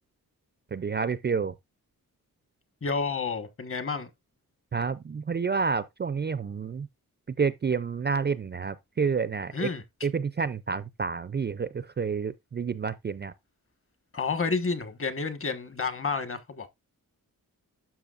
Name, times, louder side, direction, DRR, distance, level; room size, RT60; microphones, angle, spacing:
voice 1, 0.7-1.5 4.7-6.9 7.4-9.7 10.0-13.3, right 5 dB, 30° right, 0.4 m, -29 dB
voice 2, 2.8-4.1 9.5-9.8 14.1-16.7, left 4 dB, 35° left, 1.4 m, -30 dB
12.0 x 6.1 x 2.5 m
wide cardioid pair, 120°, 35 cm